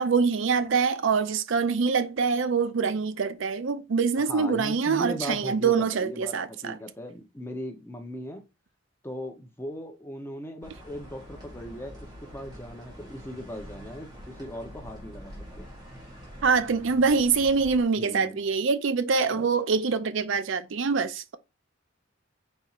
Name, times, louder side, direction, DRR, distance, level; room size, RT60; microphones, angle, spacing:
voice 1, 0.0-6.8 16.4-21.4, right 5 dB, 65° right, 0.4 m, -25 dB
voice 2, 4.2-8.4 9.0-15.7 18.0-18.4 19.3-19.5, equal, 10° left, 0.7 m, -38 dB
sound 1, 10.6-17.8, equal, 20° right, 1.7 m, -45 dB
4.4 x 4.2 x 2.4 m
head